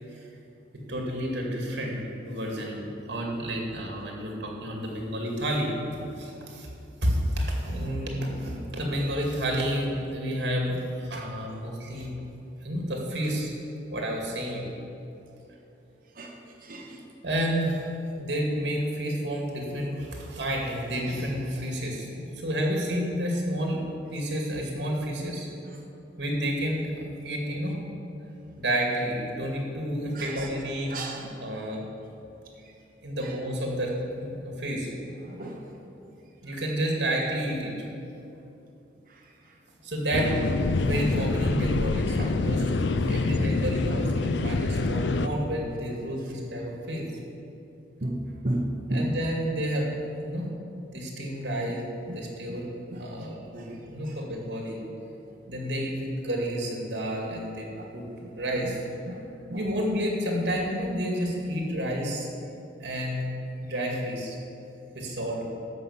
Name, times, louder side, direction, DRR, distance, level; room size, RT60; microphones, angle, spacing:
voice 1, 0.9-5.8 6.2-6.7 7.0-12.1 12.6-13.5 13.9-14.7 17.2-17.9 18.2-23.8 24.1-25.5 26.2-26.9 27.2-27.9 28.6-31.0 31.4-31.8 33.0-34.9 36.4-37.7 39.8-47.0 48.9-49.9 50.2-50.5 50.9-52.7 53.0-54.8 55.5-57.7 57.9-58.0 58.4-58.8 59.5-62.3 62.8-63.2 63.6-64.4 64.9-65.5, equal, 70° right, 0 dB, 2.3 m, -30 dB
voice 2, 16.6-17.0 30.1-30.5 30.9-31.3 33.2-33.3 35.2-35.6 42.2-42.3 48.0-49.0 52.1-52.2 52.5-52.6 52.9-53.0 57.8-57.9 58.2-58.3 59.1-59.2 59.5-59.6, right 1 dB, 50° right, 1 dB, 1.1 m, -33 dB
sound 1, 40.1-45.3, left 3 dB, 75° left, 0.5 m, -26 dB
13.0 x 5.7 x 7.2 m, 2.8 s
head